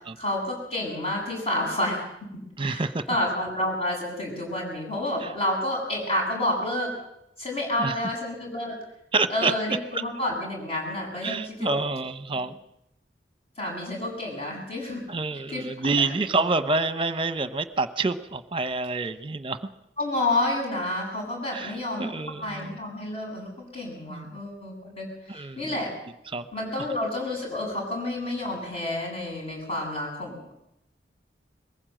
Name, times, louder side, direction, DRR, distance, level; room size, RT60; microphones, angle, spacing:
voice 1, 0.2-2.3 2.6-2.8 3.1-6.9 7.4-8.8 9.3-11.8 13.6-15.0 15.5-16.3 20.0-22.1 22.4-26.0 26.5-30.5, left 1 dB, 35° left, 0 dB, 7.5 m, -29 dB
voice 2, 2.6-3.0 5.2-5.3 7.8-8.0 9.1-10.0 11.2-12.6 15.1-19.6 21.5-22.8 24.1-24.4 25.3-25.8 26.3-26.5, right 3 dB, 30° right, 12 dB, 1.0 m, -28 dB
22.0 x 15.5 x 7.7 m, 0.81 s
head